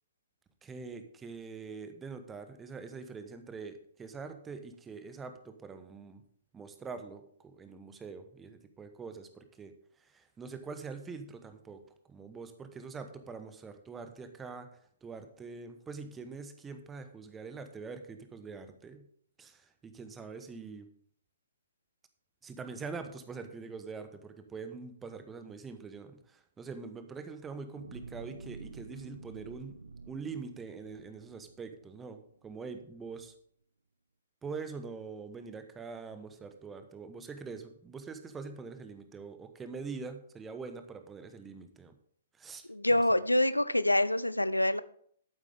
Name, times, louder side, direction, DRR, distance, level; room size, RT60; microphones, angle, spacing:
voice 1, 0.6-6.2 6.5-9.7 10.0-11.8 12.1-19.1 19.4-20.9 22.4-29.7 30.1-33.3 34.4-41.9 42.4-43.2, right 4 dB, 15° right, 8 dB, 1.2 m, -44 dB
sound 1, 27.7-32.3 32.7-32.9, right 3 dB, 75° right, 1.1 m, -49 dB
voice 2, 42.7-44.8, left 1 dB, 90° left, 16 dB, 0.5 m, -26 dB
11.5 x 8.9 x 3.6 m, 0.62 s
figure-of-eight pair, 120°, 0 cm